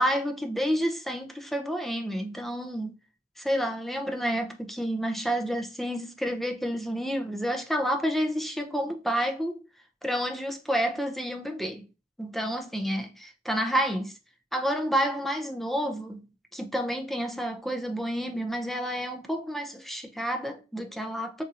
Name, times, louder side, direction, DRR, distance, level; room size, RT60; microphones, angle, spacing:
voice 1, 0.0-3.0 3.4-9.6 10.0-11.9 12.2-14.2 14.5-16.3 16.5-21.4, equal, ahead, 0.4 m, -29 dB
4.1 x 2.6 x 2.4 m
head